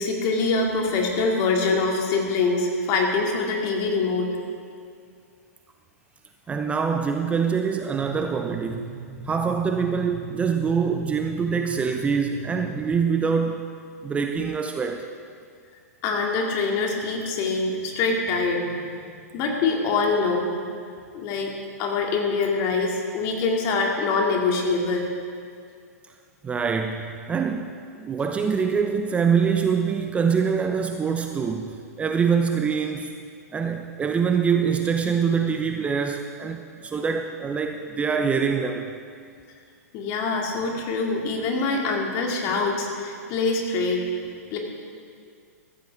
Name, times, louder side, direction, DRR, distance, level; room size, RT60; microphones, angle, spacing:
voice 1, 0.0-4.3 16.0-18.9 19.3-20.5 21.1-25.1 39.9-44.0 44.5-44.6, left 3 dB, 40° left, 0 dB, 2.4 m, -24 dB
voice 2, 6.5-8.9 9.3-13.7 14.0-15.1 26.4-33.1 33.5-38.9, right 6 dB, 15° right, 4 dB, 0.6 m, -24 dB
sound 1, 7.9-13.1, right 3 dB, 30° right, 1.7 m, -39 dB
14.5 x 14.5 x 3.6 m, 2.2 s
figure-of-eight pair, 115°, 9 cm